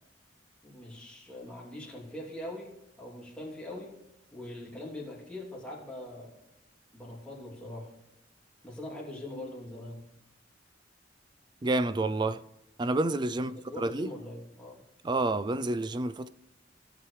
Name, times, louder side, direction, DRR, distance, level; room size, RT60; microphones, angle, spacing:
voice 1, 0.6-3.9 4.3-6.3 6.9-7.9 8.6-10.0 13.3-14.8, left 1 dB, 5° left, 2.7 m, -42 dB
voice 2, 11.6-12.4 12.8-13.5 13.8-14.1 15.0-16.3, right 2 dB, 25° right, 0.4 m, -29 dB
17.5 x 6.0 x 3.2 m
head